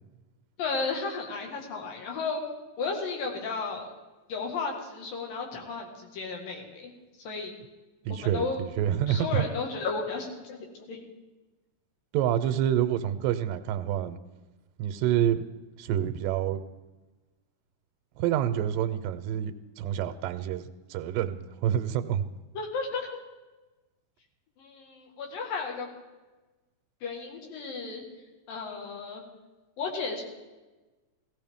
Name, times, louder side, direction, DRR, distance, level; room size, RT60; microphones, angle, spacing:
voice 1, 0.6-2.4 2.8-3.9 4.3-6.9 7.2-7.6 8.1-8.6 9.1-10.6 10.9-11.0 22.5-23.2 24.6-25.9 27.0-28.0 28.5-29.2 29.8-30.2, left 4 dB, 80° left, 1 dB, 3.4 m, -33 dB
voice 2, 8.1-9.5 12.1-14.2 14.8-15.4 15.8-16.6 18.2-19.5 19.8-20.6 20.9-22.2, right 10 dB, 85° right, 8 dB, 2.2 m, -27 dB
16.5 x 15.5 x 3.6 m, 1.2 s
omnidirectional pair, 4.0 m